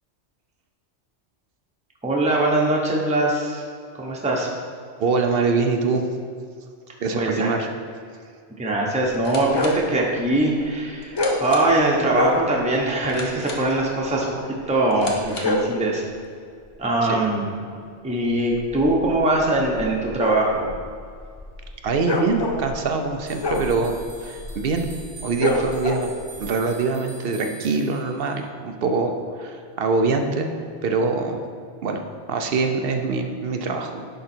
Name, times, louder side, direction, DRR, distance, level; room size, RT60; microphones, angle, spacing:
voice 1, 2.0-3.6 3.9-4.5 7.1-7.5 8.6-16.0 16.8-17.5 18.0-20.7, right 2 dB, 5° right, -3 dB, 0.8 m, -22 dB
voice 2, 5.0-6.0 7.0-7.7 17.0-17.2 21.8-24.9 25.2-26.1 26.4-30.5 30.8-31.4 31.8-32.0 32.3-34.1, right 4 dB, 60° right, 5 dB, 0.8 m, -24 dB
sound 1, 9.0-15.7, left 2 dB, 85° left, 1.3 m, -40 dB
sound 2, 9.5-9.9 11.1-11.5 12.1-12.5 15.1-15.8 18.4-26.4, left 2 dB, 45° left, 0.3 m, -28 dB
sound 3, 23.3-28.5, right 5 dB, 75° right, 1.5 m, -44 dB
10.5 x 3.9 x 4.4 m, 2.2 s
omnidirectional pair, 1.2 m